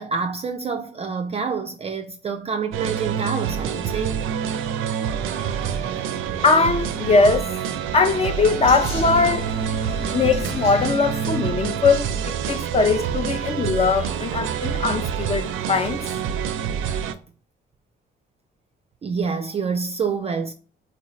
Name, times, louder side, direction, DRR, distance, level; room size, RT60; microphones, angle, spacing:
voice 1, 0.0-4.2 19.0-20.5, right 5 dB, 30° right, 0.4 m, -27 dB
sound 1, 2.7-17.1, right 8 dB, 90° right, 0.5 m, -27 dB
voice 2, 6.4-7.5 7.9-9.5 10.1-16.0, left 4 dB, 30° left, 0.5 m, -20 dB
Vehicle, 8.6-12.5, left 1 dB, 85° left, 1.2 m, -34 dB
4.3 x 2.6 x 3.0 m
cardioid pair, 90°, 20 cm